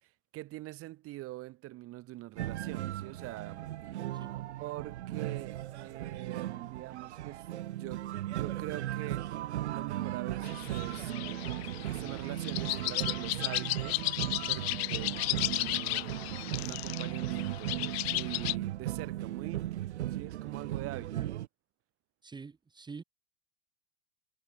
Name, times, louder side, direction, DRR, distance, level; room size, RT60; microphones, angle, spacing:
voice 1, 0.0-3.7 4.6-11.1 11.8-14.0 14.5-16.2 16.6-21.2, right 17 dB, 40° right, 3.5 m, -44 dB
sound 1, 2.4-21.5, right 14 dB, 90° right, 0.6 m, -37 dB
sound 2, 10.4-18.5, left 20 dB, 65° left, 0.5 m, -35 dB
voice 2, 22.2-23.0, right 4 dB, 15° right, 1.5 m, -46 dB
hypercardioid pair, 110°, 33 cm